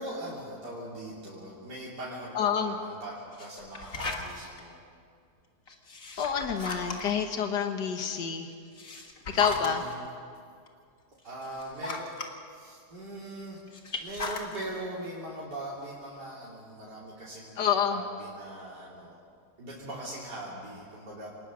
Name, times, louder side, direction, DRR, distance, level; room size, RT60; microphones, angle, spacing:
voice 1, 0.0-4.8 9.3-10.1 11.2-12.1 12.5-13.8 14.0-19.2 19.6-21.3, right 1 dB, 85° right, -7 dB, 3.7 m, -41 dB
voice 2, 2.3-2.8 6.2-8.5 9.3-9.8 17.6-18.0, left 7 dB, 90° left, 5 dB, 1.9 m, -28 dB
sound 1, 3.3-4.6 5.7-7.3 8.5-9.9 10.7-10.8 11.3-12.3 13.7-14.6, left 3 dB, 55° left, 2.2 m, -36 dB
28.5 x 19.0 x 6.3 m, 2.3 s
omnidirectional pair, 1.8 m